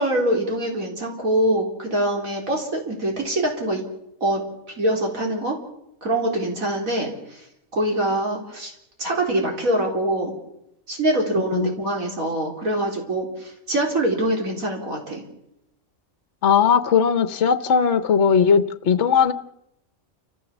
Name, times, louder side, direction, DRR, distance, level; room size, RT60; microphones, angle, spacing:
voice 1, 0.0-3.8 4.2-4.4 4.8-5.6 6.0-7.4 7.7-8.7 9.0-10.3 10.9-15.2, right 1 dB, 80° right, 0 dB, 4.3 m, -24 dB
voice 2, 16.4-19.3, left 7 dB, 60° left, 11 dB, 1.2 m, -18 dB
29.5 x 14.5 x 7.2 m, 0.82 s
omnidirectional pair, 1.4 m